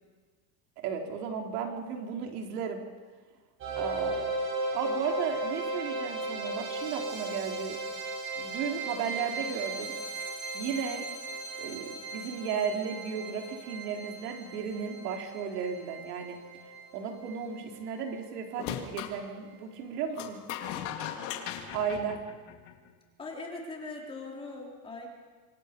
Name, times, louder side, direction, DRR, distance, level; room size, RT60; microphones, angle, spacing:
voice 1, 0.8-2.8 3.7-4.3 4.7-7.8 8.4-9.9 10.5-11.0 11.6-16.4 16.9-20.4 21.7-22.2, right 6 dB, 85° right, 2 dB, 4.0 m, -34 dB
sound 1, 3.6-18.6, right 2 dB, 30° right, 4.9 m, -37 dB
sound 2, 18.6-19.2 20.2-22.9, left 10 dB, 55° left, 2.6 m, -38 dB
voice 2, 23.2-25.1, left 3 dB, 10° left, -2 dB, 3.7 m, -41 dB
27.5 x 24.0 x 5.4 m, 1.5 s
supercardioid pair, 180°, 45 cm